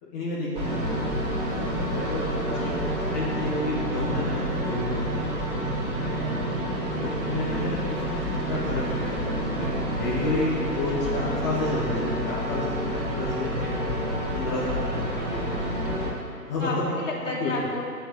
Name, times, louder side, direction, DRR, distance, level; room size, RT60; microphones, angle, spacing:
voice 1, 0.0-2.6 3.1-6.5 7.0-8.2 8.5-14.0 14.3-15.5 16.4-16.9 17.4-17.5, left 2 dB, 10° left, -7 dB, 0.9 m, -31 dB
sound 1, 0.6-16.1, equal, 15° right, 1.7 m, -28 dB
voice 2, 2.5-3.3 7.4-8.1 11.1-11.5 15.1-15.4 16.6-17.8, left 2 dB, 50° left, -4 dB, 3.2 m, -34 dB
9.1 x 7.9 x 9.0 m, 2.1 s
figure-of-eight pair, 140°, 48 cm